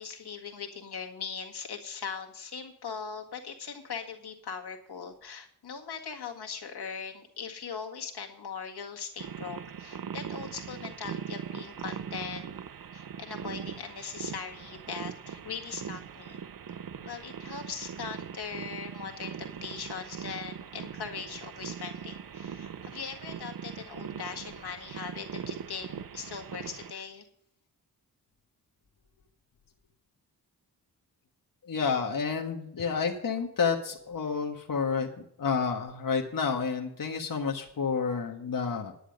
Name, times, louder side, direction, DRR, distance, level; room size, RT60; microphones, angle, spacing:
voice 1, 0.0-12.5 12.9-16.4 16.7-16.8 17.0-27.3, left 6 dB, 75° left, 3 dB, 1.9 m, -40 dB
sound 1, 9.2-26.9, right 8 dB, 60° right, 0.7 m, -41 dB
voice 2, 31.6-35.1 35.4-38.9, left 5 dB, 55° left, 1 dB, 1.5 m, -30 dB
10.0 x 10.0 x 5.2 m, 0.72 s
wide cardioid pair, 75°, 39 cm